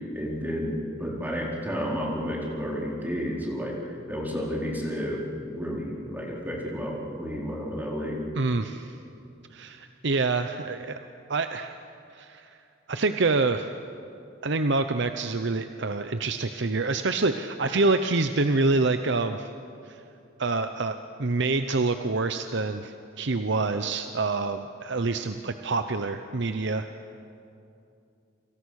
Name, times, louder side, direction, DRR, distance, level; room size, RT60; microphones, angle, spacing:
voice 1, 0.1-8.2, equal, 10° right, -3 dB, 4.4 m, -31 dB
voice 2, 8.3-8.9 9.5-11.0 11.3-11.7 12.1-12.6 12.9-13.7 14.4-19.5 19.9-20.0 20.4-26.8, right 3 dB, 65° right, 8 dB, 0.8 m, -26 dB
28.0 x 26.5 x 6.5 m, 2.6 s
head